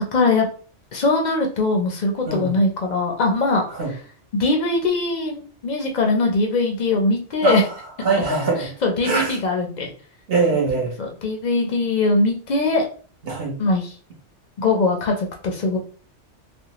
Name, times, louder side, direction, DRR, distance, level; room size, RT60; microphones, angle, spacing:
voice 1, 0.1-0.5 0.9-3.6 4.3-7.6 8.8-9.9 10.5-10.6 11.0-12.8 13.6-13.9 14.6-15.8, left 3 dB, 55° left, 2 dB, 0.5 m, -21 dB
voice 2, 2.3-2.6 3.7-3.9 7.4-7.7 8.0-8.7 9.0-9.4 10.3-10.9 13.2-13.5, right 3 dB, 55° right, -2 dB, 1.0 m, -22 dB
2.5 x 2.1 x 2.9 m, 0.42 s
omnidirectional pair, 1.2 m